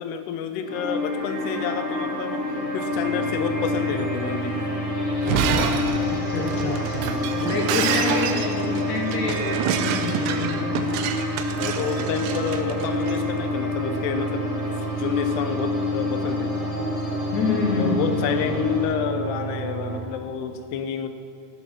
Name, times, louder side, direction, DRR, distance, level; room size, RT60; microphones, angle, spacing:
voice 1, 0.0-2.5 2.7-4.6 5.3-5.7 11.6-14.7 15.0-16.5 17.7-21.1, left 7 dB, 80° left, 7 dB, 2.9 m, -29 dB
sound 1, 0.6-18.8, left 3 dB, 10° left, 3.7 m, -28 dB
sound 2, 2.9-20.0, right 6 dB, 65° right, 2.0 m, -33 dB
Shatter, 5.1-13.2, right 8 dB, 85° right, 2.7 m, -28 dB
voice 2, 6.1-10.9 17.3-18.5, left 4 dB, 65° left, 0 dB, 2.1 m, -28 dB
15.0 x 9.4 x 6.1 m, 2.4 s
omnidirectional pair, 4.8 m